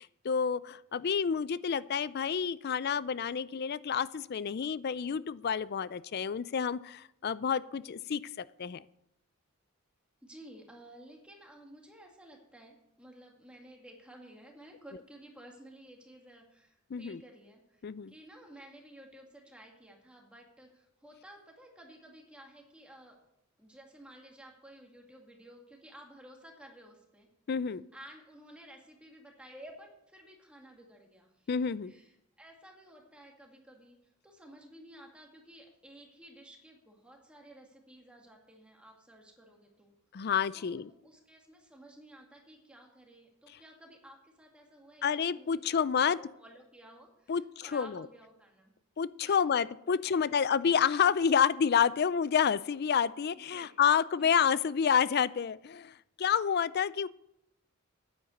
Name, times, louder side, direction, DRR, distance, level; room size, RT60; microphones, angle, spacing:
voice 1, 0.0-8.8 16.9-17.2 17.8-18.1 27.5-27.8 31.5-31.9 40.1-40.9 45.0-46.2 47.3-48.1 49.0-57.1, left 7 dB, 50° left, 18 dB, 0.4 m, -29 dB
voice 2, 10.2-23.2 23.6-27.3 27.9-31.5 31.9-32.1 32.4-39.9 40.5-45.8 46.2-48.7 49.2-50.2 53.5-53.8 54.2-54.3, right 1 dB, 5° right, 0 dB, 2.1 m, -54 dB
9.5 x 8.8 x 6.5 m, 0.82 s
head